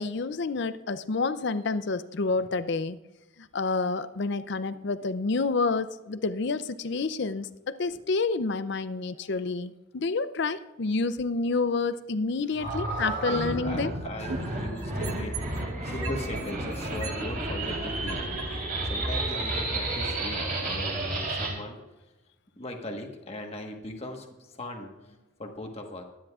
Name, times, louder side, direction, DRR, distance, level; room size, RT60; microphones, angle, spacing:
voice 1, 0.0-3.0 3.5-13.9, left 3 dB, 55° left, 13 dB, 0.5 m, -29 dB
voice 2, 4.7-5.1 7.9-8.0 9.1-9.3 13.2-21.8 22.6-26.0, left 1 dB, 30° left, 2 dB, 1.4 m, -39 dB
sound 1, 12.5-21.5, right 2 dB, 45° right, 3.6 m, -31 dB
sound 2, 14.1-15.6 16.0-18.4 19.0-19.1, right 4 dB, 90° right, 1.4 m, -38 dB
22.5 x 10.0 x 2.4 m, 1.1 s
head